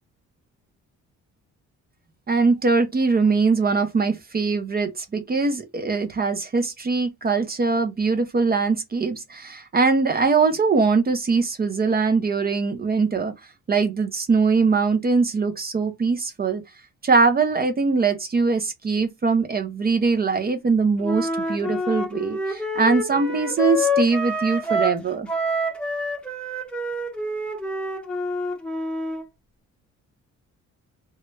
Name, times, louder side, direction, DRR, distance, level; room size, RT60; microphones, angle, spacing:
voice 1, 2.3-13.3 13.7-16.6 17.0-25.3, right 4 dB, 30° right, 0.6 m, -22 dB
Wind instrument woodwind instrument, 21.0-25.0 25.3-29.2, left 1 dB, 5° left, 0.8 m, -27 dB
3.0 x 2.2 x 3.2 m
cardioid pair, 90°, 30 cm